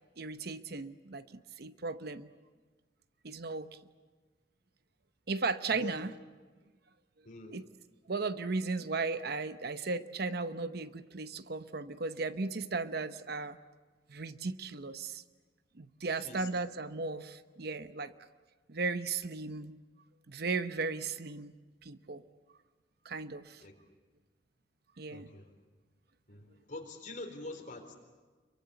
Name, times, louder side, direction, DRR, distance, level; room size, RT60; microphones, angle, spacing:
voice 1, 0.2-2.3 3.2-3.7 5.3-6.1 7.5-7.7 8.1-13.6 14.1-15.2 15.8-18.1 18.7-19.7 20.3-21.5 21.8-22.2 23.0-23.6 25.0-25.3, right 4 dB, 60° right, 12 dB, 0.9 m, -36 dB
voice 2, 7.2-7.6 16.2-16.5 23.6-23.8 25.1-25.5 26.3-27.9, left 2 dB, 45° left, 4 dB, 4.0 m, -45 dB
27.0 x 23.0 x 8.3 m, 1.3 s
head